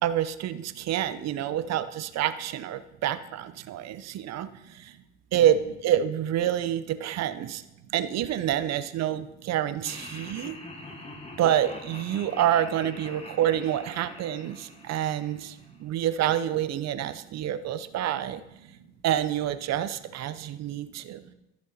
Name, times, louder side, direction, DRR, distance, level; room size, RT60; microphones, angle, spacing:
voice 1, 0.0-4.9 5.3-7.6 7.9-10.6 11.4-18.4 19.0-21.2, right 11 dB, 55° right, 13 dB, 0.7 m, -27 dB
voice 2, 3.7-5.0 7.8-7.9 10.1-11.1 14.8-15.1 15.6-15.8 17.5-17.6 18.6-18.9 20.4-21.3, right 8 dB, 85° right, -1 dB, 1.4 m, -55 dB
Laughter, 9.8-16.0, left 1 dB, 20° left, 1.5 m, -44 dB
13.5 x 6.4 x 4.2 m, 0.91 s
supercardioid pair, 100°, 32 cm